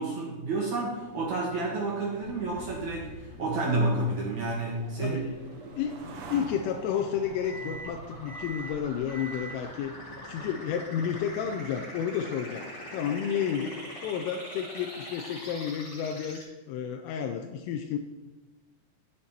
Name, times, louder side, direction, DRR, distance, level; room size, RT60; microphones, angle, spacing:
voice 1, 0.0-5.2, right 2 dB, 65° right, -3 dB, 1.9 m, -30 dB
sound 1, 1.0-11.3, left 1 dB, 60° left, 3.5 m, -47 dB
sound 2, 2.2-16.4, left 1 dB, 20° left, 3.4 m, -44 dB
sound 3, 2.8-10.2, right 5 dB, 85° right, 1.9 m, -49 dB
voice 2, 5.0-5.4 5.8-9.9 10.3-12.7 12.9-13.8 14.0-16.4 16.7-18.0, left 8 dB, 85° left, 4 dB, 3.1 m, -31 dB
12.5 x 8.8 x 4.3 m, 1.2 s
omnidirectional pair, 5.9 m